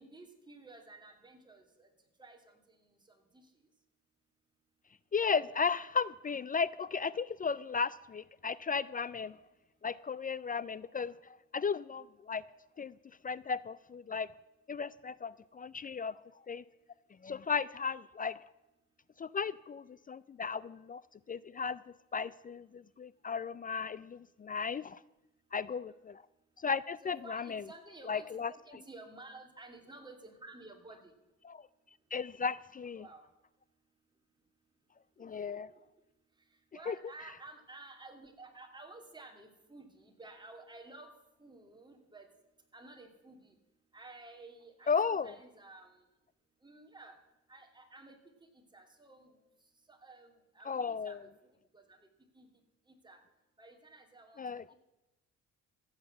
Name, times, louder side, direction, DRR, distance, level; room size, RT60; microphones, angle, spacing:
voice 1, 0.0-1.9 2.2-3.5 25.7-26.0 27.0-31.1 32.9-33.2 35.2-35.6 36.7-41.1 41.4-42.3 42.7-43.5 43.9-46.0 46.6-47.2 47.5-48.2 48.5-49.3 49.9-51.3 51.7-52.0 52.3-52.5 52.9-53.2 53.6-54.8, right 2 dB, 15° right, 3 dB, 2.7 m, -53 dB
voice 2, 5.1-9.4 9.8-12.4 12.8-12.9 13.2-14.3 14.7-16.1 16.5-16.6 17.2-18.4 19.2-21.0 21.3-21.8 22.1-25.0 25.5-26.1 26.6-27.6 28.1-28.5 31.4-31.6 32.1-33.0 35.2-35.7 36.9-37.0 44.9-45.3 50.7-51.2 54.4-54.7, left 5 dB, 30° left, 19 dB, 0.4 m, -35 dB
14.5 x 8.1 x 8.0 m, 0.96 s
cardioid pair, 90°, 30 cm